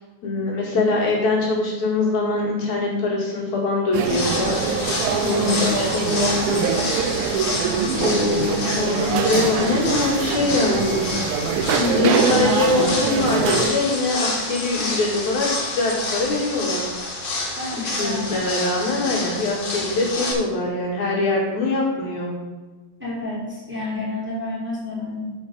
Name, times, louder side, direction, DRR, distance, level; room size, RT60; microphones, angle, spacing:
voice 1, 0.2-4.7 5.0-7.3 8.0-11.1 11.9-16.8 17.8-22.4, left 3 dB, 75° left, -3 dB, 3.5 m, -23 dB
sound 1, 3.9-13.7, right 6 dB, 85° right, 2.3 m, -23 dB
sound 2, 4.0-20.3, left 2 dB, 45° left, 2.0 m, -28 dB
voice 2, 11.7-12.2 17.6-18.3 23.0-25.3, left 2 dB, 5° right, -6 dB, 2.5 m, -29 dB
8.6 x 5.1 x 6.2 m, 1.3 s
omnidirectional pair, 3.4 m